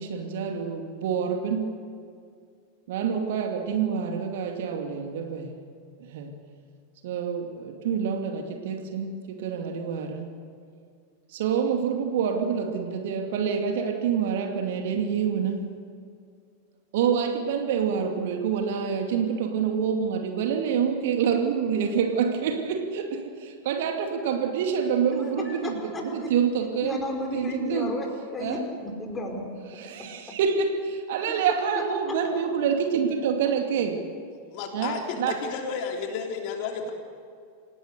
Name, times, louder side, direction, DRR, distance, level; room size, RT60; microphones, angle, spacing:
voice 1, 0.0-1.7 2.9-5.5 6.0-6.3 7.0-10.3 11.3-15.7 16.9-27.0 27.3-27.9 28.4-28.6 29.8-34.0 34.7-35.4, right 7 dB, 55° right, 4 dB, 2.4 m, -27 dB
voice 2, 25.2-26.3 26.8-28.1 28.3-29.5 31.7-31.8 32.3-32.4, left 1 dB, 15° left, 1 dB, 5.2 m, -33 dB
voice 3, 34.5-36.9, left 5 dB, 45° left, 2 dB, 3.3 m, -32 dB
28.0 x 17.5 x 6.7 m, 2.3 s
figure-of-eight pair, 90°, 0 cm